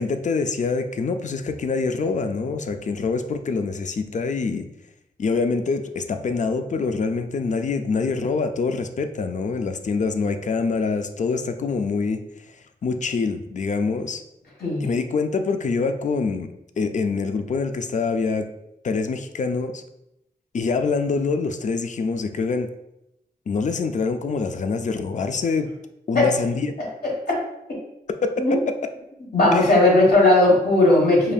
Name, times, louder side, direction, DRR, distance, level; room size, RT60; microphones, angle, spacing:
voice 1, 0.0-4.7 5.2-12.2 12.8-14.2 14.8-18.5 18.8-19.8 20.5-22.7 23.5-25.7 26.1-26.7 28.2-28.6 29.5-29.7, left 4 dB, 45° left, 8 dB, 0.4 m, -25 dB
voice 2, 14.6-14.9 26.1-26.3 27.0-27.4 28.4-28.6 29.3-31.3, left 2 dB, 65° left, -3 dB, 1.5 m, -17 dB
5.0 x 2.7 x 2.3 m, 0.86 s
cardioid pair, 60°, 17 cm